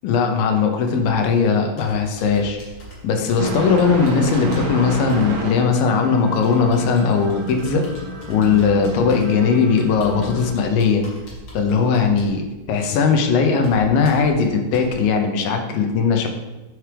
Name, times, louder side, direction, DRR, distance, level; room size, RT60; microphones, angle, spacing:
voice 1, 0.0-2.6 3.0-7.9 8.3-11.1 11.5-16.3, left 5 dB, 75° left, 4 dB, 2.4 m, -19 dB
Computer keyboard, 0.9-14.9, left 1 dB, 50° left, 1.8 m, -41 dB
sound 1, 3.4-10.5, right 2 dB, 60° right, 1.8 m, -30 dB
7.8 x 6.1 x 3.4 m, 1.1 s
omnidirectional pair, 4.3 m